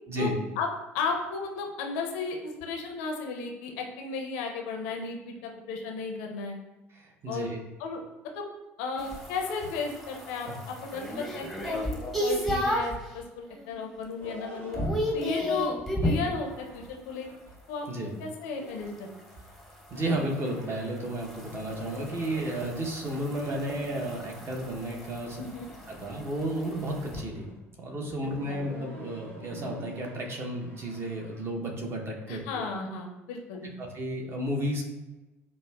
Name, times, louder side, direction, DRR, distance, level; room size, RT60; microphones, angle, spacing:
voice 1, 0.9-6.6 7.3-7.5 7.8-8.0 8.4-8.5 8.8-11.8 12.2-14.8 15.1-17.3 17.7-17.9 18.2-19.1 25.4-25.7 28.5-28.6 32.3-33.7, left 4 dB, 70° left, 2 dB, 0.5 m, -34 dB
voice 2, 6.9-7.6 10.5-10.6 17.9-18.1 19.9-25.4 25.9-27.5 27.8-32.6 33.8-34.8, right 1 dB, 35° right, 1 dB, 0.7 m, -33 dB
sound 1, 9.0-13.0 13.5-14.0 14.2-16.3 18.8-27.2, equal, ahead, 0.7 m, -34 dB
sound 2, 14.2-17.7 18.5-21.2 21.5-22.8 23.1-24.9 25.2-27.6 28.1-31.4, right 1 dB, 75° right, 1.1 m, -47 dB
5.2 x 2.0 x 2.3 m, 1.1 s
figure-of-eight pair, 60°, 7 cm